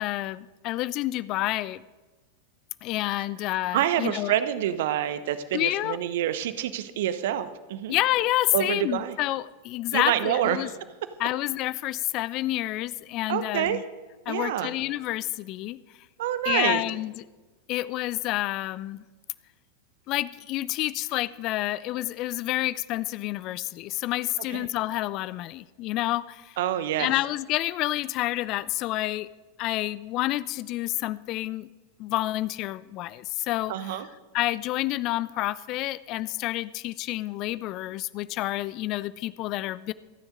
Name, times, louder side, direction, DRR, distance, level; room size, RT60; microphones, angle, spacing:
voice 1, 0.0-1.8 2.8-4.3 5.5-6.0 7.9-10.7 11.2-13.8 14.3-15.8 16.4-17.1 17.7-19.0 20.1-26.6 27.0-29.3 29.6-31.7 32.0-33.7 34.3-39.9, left 16 dB, 40° left, 19 dB, 0.4 m, -29 dB
voice 2, 3.7-7.9 8.5-9.2 9.9-10.7 13.3-13.8 14.3-14.7 16.2-16.8 24.5-24.7 26.6-27.1 33.7-34.1, right 11 dB, 55° right, 12 dB, 0.9 m, -27 dB
26.5 x 9.9 x 3.8 m, 1.2 s
figure-of-eight pair, 90°, 0 cm